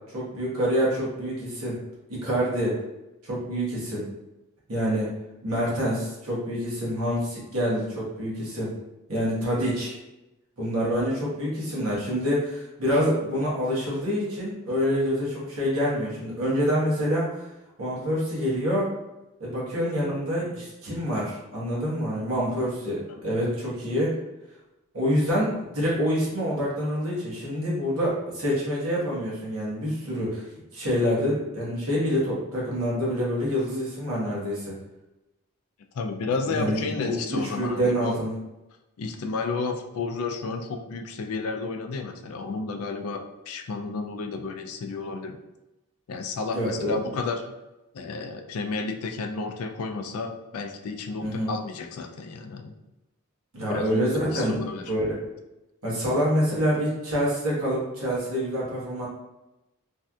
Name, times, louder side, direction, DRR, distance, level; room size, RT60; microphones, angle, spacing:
voice 1, 0.1-1.8 2.1-2.7 3.2-4.1 4.7-5.1 5.4-8.7 9.1-9.9 10.6-17.5 17.8-18.9 19.4-24.1 24.9-30.5 30.7-34.8 36.5-38.3 46.5-46.9 51.2-51.5 53.5-54.6 54.9-55.2 55.8-59.1, equal, 80° right, -6 dB, 1.2 m, -26 dB
voice 2, 35.9-38.2 39.0-45.4 46.1-47.4 47.9-52.7 53.6-54.9, left 4 dB, 75° left, 5 dB, 0.4 m, -32 dB
3.2 x 2.7 x 2.3 m, 0.99 s
head